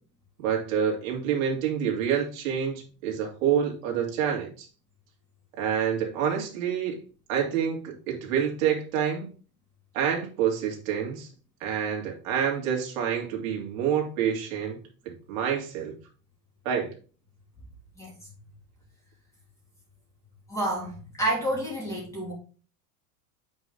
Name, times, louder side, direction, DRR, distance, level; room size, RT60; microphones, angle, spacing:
voice 1, 0.4-4.7 5.6-7.0 7.3-9.3 9.9-11.3 11.6-14.8 15.3-15.9 16.6-16.9, right 8 dB, 65° right, 2.7 m, -27 dB
voice 2, 20.5-22.3, right 1 dB, 5° left, 2.9 m, -29 dB
8.0 x 5.4 x 3.9 m
supercardioid pair, 155°, 44 cm